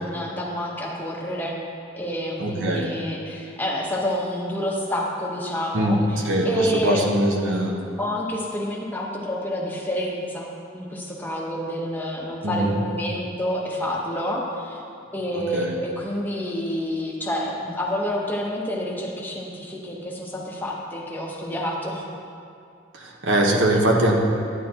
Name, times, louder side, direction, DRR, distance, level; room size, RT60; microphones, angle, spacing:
voice 1, 0.0-1.6 1.9-7.1 8.0-10.5 10.7-14.8 15.1-22.0, equal, 10° left, -3 dB, 0.9 m, -28 dB
voice 2, 2.4-2.9 5.7-6.0 6.2-7.8 12.4-12.8 15.3-15.7 22.9-24.1, right 1 dB, 80° right, 1 dB, 1.1 m, -22 dB
11.0 x 9.5 x 2.9 m, 2.4 s
head